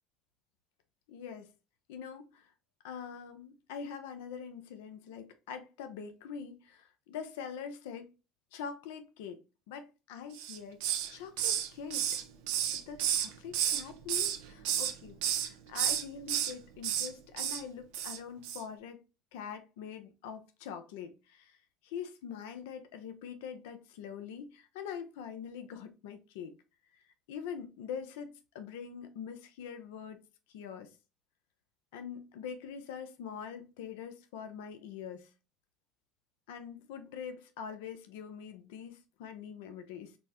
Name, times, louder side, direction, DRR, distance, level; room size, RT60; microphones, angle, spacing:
voice 1, 1.1-1.5 1.9-2.5 2.8-8.1 8.5-9.4 9.7-12.2 12.8-19.0 19.3-26.5 27.3-30.2 30.5-30.9 31.9-35.3 36.5-40.2, left 7 dB, 85° left, 0.6 m, -44 dB
Hiss, 10.3-11.1 11.4-13.8 14.1-14.9 15.2-15.5 15.7-16.5 16.8-17.1 17.4-17.6 17.9-18.2 18.4-18.6, right 10 dB, 80° right, 0.7 m, -31 dB
5.3 x 2.1 x 2.9 m
supercardioid pair, 95°, 0 cm